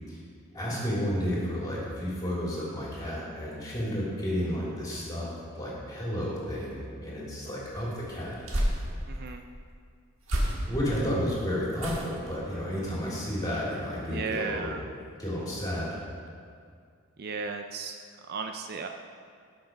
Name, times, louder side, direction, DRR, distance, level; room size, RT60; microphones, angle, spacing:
voice 1, 0.5-5.3 5.5-8.4 10.7-14.8 15.2-16.0, equal, 15° left, -6 dB, 2.7 m, -32 dB
sound 1, 7.6-9.3 10.2-11.0 11.7-12.3 12.7-13.1 13.4-13.5, equal, 65° right, 1.6 m, -31 dB
voice 2, 9.1-9.4 14.1-14.8 17.2-18.0 18.3-18.9, right 5 dB, 45° right, 5 dB, 0.4 m, -34 dB
10.5 x 6.1 x 5.3 m, 2.2 s
head